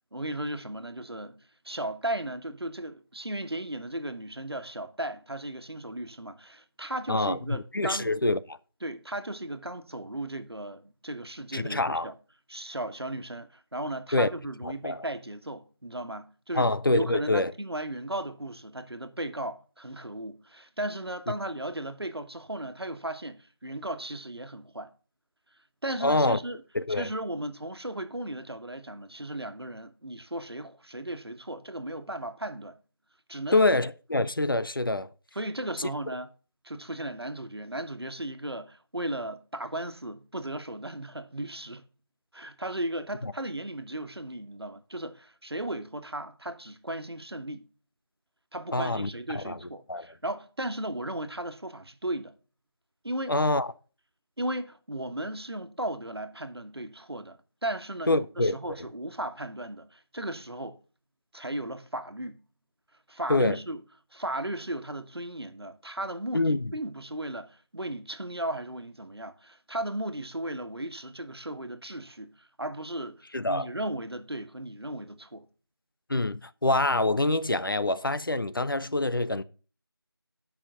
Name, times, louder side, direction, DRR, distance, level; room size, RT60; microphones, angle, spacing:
voice 1, 0.1-1.4 1.6-8.1 8.8-12.1 12.5-24.9 25.8-26.6 26.9-32.8 33.3-33.6 35.3-36.3 36.6-41.8 42.3-47.7 48.5-52.3 53.0-53.3 54.4-57.4 57.6-60.8 61.3-62.4 63.1-63.8 64.1-75.5, right 1 dB, 80° right, 1.3 m, -36 dB
voice 2, 7.1-8.4 11.5-12.1 14.1-14.3 14.6-15.0 16.5-17.5 26.0-26.4 26.7-27.1 33.5-35.1 43.2-43.3 48.7-49.6 49.9-50.1 53.3-53.7 58.1-58.6 63.3-63.6 66.3-66.7 73.3-73.7 76.1-79.4, left 2 dB, 60° left, 0.6 m, -26 dB
7.6 x 5.6 x 6.5 m
figure-of-eight pair, 170°, 13 cm